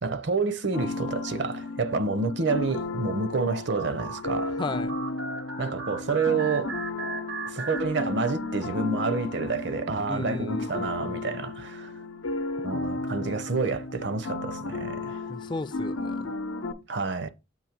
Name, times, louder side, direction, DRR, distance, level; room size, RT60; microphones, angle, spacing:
voice 1, 0.0-4.6 5.6-6.7 7.5-11.9 12.6-15.3 16.9-17.3, right 4 dB, 60° right, 0.7 m, -29 dB
sound 1, 0.7-16.7, left 3 dB, 90° left, 0.7 m, -34 dB
sound 2, 3.4-8.5, right 3 dB, 85° right, 1.1 m, -37 dB
voice 2, 4.6-4.9 10.1-11.4 15.3-16.2, left 3 dB, 25° left, 0.3 m, -34 dB
7.2 x 3.0 x 5.8 m
head